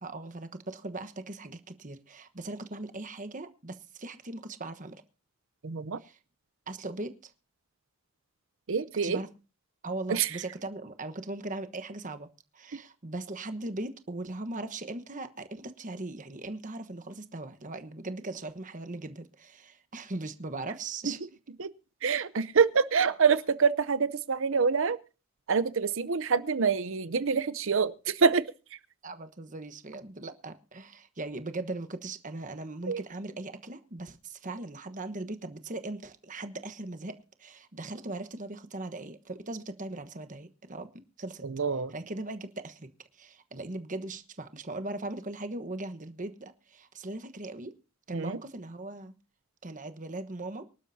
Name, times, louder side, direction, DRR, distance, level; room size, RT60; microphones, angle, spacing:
voice 1, 0.0-5.0 6.0-6.2 6.7-7.3 9.0-9.3 9.8-12.3 12.5-21.2 29.0-41.5 41.9-42.9 43.1-47.7 48.1-49.1 49.6-50.6, right 2 dB, 35° right, 1.2 m, -39 dB
voice 2, 5.6-6.0 8.7-9.2 10.1-10.3 21.1-21.2 21.6-21.7 22.0-25.0 25.5-28.4 32.9-33.0 41.4-41.9 48.1-48.4, right 5 dB, 65° right, 0.7 m, -26 dB
24.5 x 12.0 x 2.8 m
head